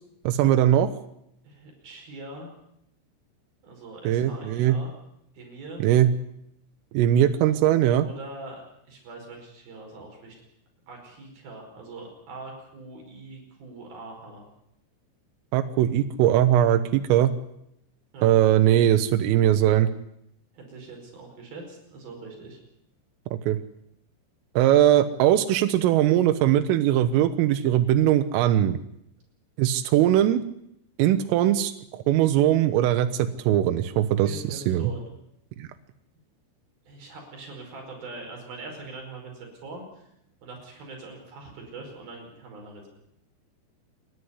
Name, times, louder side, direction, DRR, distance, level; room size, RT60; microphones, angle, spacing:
voice 1, 0.3-0.9 4.1-4.8 5.8-6.1 6.9-8.1 15.5-17.3 18.2-19.9 23.3-23.6 24.6-28.8 29.6-30.4 31.0-34.9 35.6-35.7, right 12 dB, 85° right, 8 dB, 3.6 m, -20 dB
voice 2, 1.4-2.5 3.6-4.9 5.4-5.8 7.5-7.6 8.0-8.6 8.9-10.4 10.9-14.5 18.1-18.4 20.5-22.6 34.2-35.0 36.9-40.1 40.4-42.9, right 3 dB, 50° right, 1 dB, 6.8 m, -42 dB
28.0 x 11.5 x 9.7 m, 0.77 s
omnidirectional pair, 5.7 m